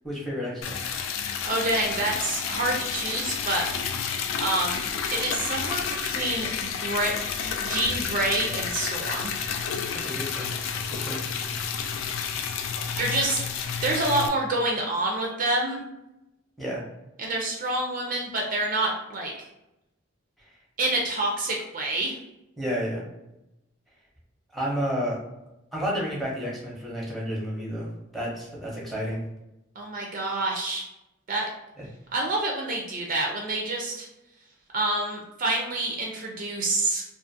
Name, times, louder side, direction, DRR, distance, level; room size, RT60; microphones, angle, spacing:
voice 1, 0.0-0.8 10.0-10.6 11.0-11.4 16.6-16.8 22.6-23.0 24.5-25.2 25.7-27.9 28.1-29.2 31.8-31.9, equal, ahead, -5 dB, 0.6 m, -31 dB
Liquid, 0.6-14.3, left 6 dB, 80° left, 0.3 m, -30 dB
voice 2, 1.4-3.6 4.4-4.8 5.1-7.1 7.4-9.3 13.0-13.4 13.8-15.8 17.2-19.3 20.8-22.2 29.8-30.8 31.3-31.5 32.1-34.1 34.7-37.0, right 2 dB, 40° right, -1 dB, 0.4 m, -27 dB
2.4 x 2.4 x 2.6 m, 0.91 s
head